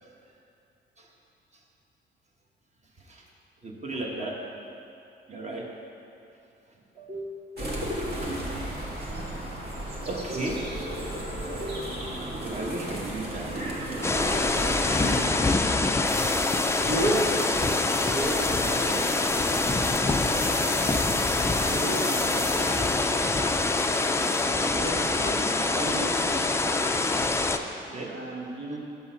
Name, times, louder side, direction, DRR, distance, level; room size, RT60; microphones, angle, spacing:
voice 1, 2.9-3.3 3.6-4.4 5.3-5.7 6.7-7.5 8.3-8.4 9.1-9.3 9.6-10.7 11.5-12.0 12.4-13.8 17.1-17.8 18.6-19.4 19.7-20.2 22.8-23.1 24.5-24.8 25.2-25.4 25.6-26.0 27.3-28.2, right 2 dB, 35° right, -1 dB, 1.3 m, -37 dB
sound 1, 7.6-15.3, right 1 dB, 55° right, 1.6 m, -33 dB
sound 2, 14.0-27.6, left 3 dB, 15° left, 0.4 m, -25 dB
sound 3, 16.0-24.4, equal, 5° right, 1.5 m, -37 dB
voice 2, 16.8-17.4 18.1-18.4 21.6-23.0 24.6-26.1 27.8-28.8, right 1 dB, 80° right, -4 dB, 1.4 m, -32 dB
7.0 x 5.5 x 5.7 m, 2.7 s
cardioid pair, 90°, 20 cm